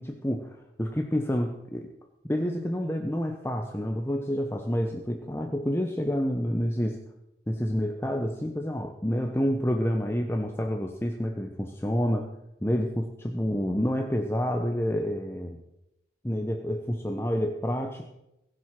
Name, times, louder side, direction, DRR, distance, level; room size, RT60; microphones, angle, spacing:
voice 1, 0.0-1.9 2.2-7.0 7.5-12.3 12.6-15.6 16.2-18.1, equal, 15° left, 3 dB, 1.0 m, -28 dB
22.0 x 7.7 x 6.0 m, 0.89 s
head